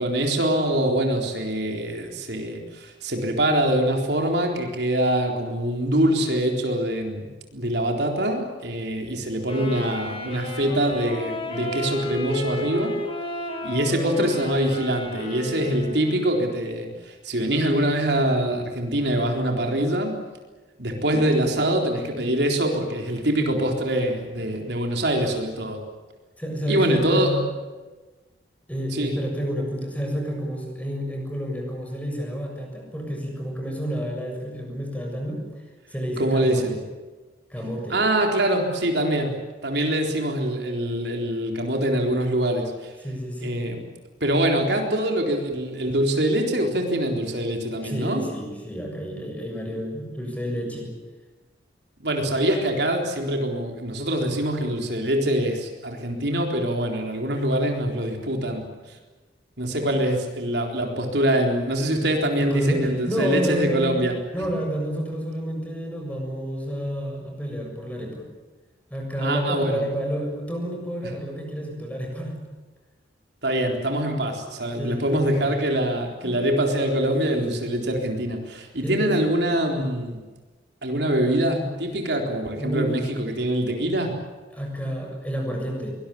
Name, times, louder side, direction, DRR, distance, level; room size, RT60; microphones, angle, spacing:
voice 1, 0.0-7.3 7.5-12.9 13.6-20.2 20.8-25.8 26.7-27.4 28.9-29.2 36.2-36.8 37.9-39.4 39.6-42.9 43.4-43.8 44.2-48.3 52.0-59.0 59.6-64.1 69.2-69.8 73.4-80.2 80.8-84.2, right 1 dB, 65° right, 3 dB, 4.0 m, -24 dB
Wind instrument woodwind instrument, 9.4-16.4, left 1 dB, 30° left, 6.1 m, -32 dB
voice 2, 26.4-27.4 28.7-35.4 35.9-36.8 37.5-38.0 43.0-43.6 47.8-50.9 62.3-64.1 64.3-68.3 68.9-72.4 74.8-75.6 76.2-76.4 77.5-77.7 78.8-79.2 82.5-82.9 84.5-85.9, equal, 10° left, 1 dB, 7.1 m, -29 dB
23.5 x 20.5 x 8.6 m, 1.2 s
head